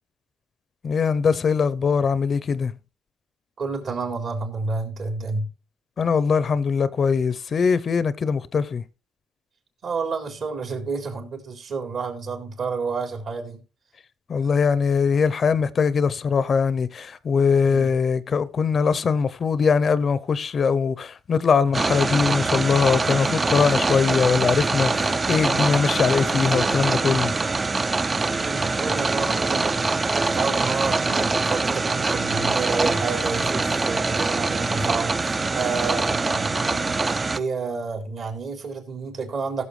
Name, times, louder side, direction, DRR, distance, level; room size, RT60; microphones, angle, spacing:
voice 1, 0.8-2.7 6.0-8.8 14.3-27.3, left 5 dB, 45° left, 0.6 m, -21 dB
voice 2, 3.6-5.5 9.8-13.6 17.7-17.9 28.3-30.0 30.3-39.6, right 4 dB, 60° right, 3.7 m, -30 dB
sound 1, 21.7-37.4, right 3 dB, 30° right, 0.5 m, -24 dB
16.5 x 7.0 x 3.2 m
cardioid pair, 90°, 0 cm